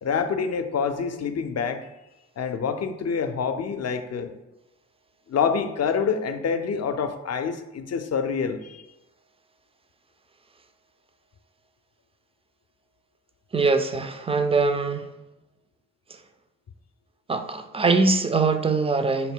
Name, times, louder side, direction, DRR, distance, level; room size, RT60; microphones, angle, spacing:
voice 1, 0.0-1.9 2.4-4.3 5.3-8.9, left 6 dB, 45° left, 8 dB, 0.5 m, -26 dB
voice 2, 13.5-15.1 17.3-19.3, right 3 dB, 15° right, 8 dB, 0.3 m, -22 dB
4.0 x 2.2 x 3.6 m, 0.96 s
supercardioid pair, 45°, 35 cm